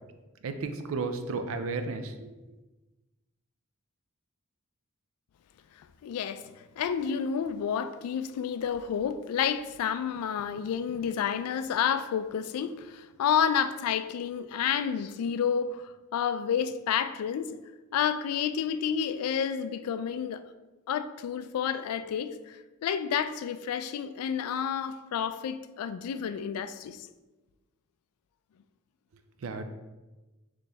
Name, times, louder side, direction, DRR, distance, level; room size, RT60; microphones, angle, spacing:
voice 1, 0.4-2.3 29.4-29.6, right 3 dB, 65° right, 0.4 m, -33 dB
voice 2, 6.0-17.6 17.9-20.4 20.9-22.3 22.8-27.1, left 8 dB, 90° left, 0.3 m, -30 dB
4.2 x 3.1 x 3.4 m
head